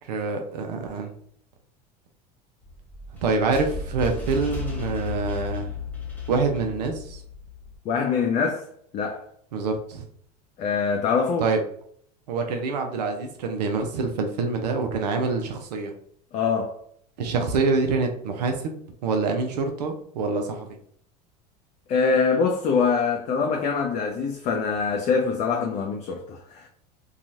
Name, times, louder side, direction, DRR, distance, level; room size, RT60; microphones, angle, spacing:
voice 1, 0.0-1.1 3.1-5.7 6.3-7.2 9.5-10.1 11.4-11.6 12.3-15.9 17.2-20.7, right 4 dB, 75° right, 0.6 m, -26 dB
sound 1, 2.6-7.8, left 4 dB, 10° left, 0.9 m, -34 dB
voice 2, 7.9-8.7 8.9-9.2 10.6-11.5 16.3-16.8 21.9-26.7, left 5 dB, 35° left, 0.4 m, -24 dB
2.9 x 2.3 x 2.6 m
hypercardioid pair, 85°, 21 cm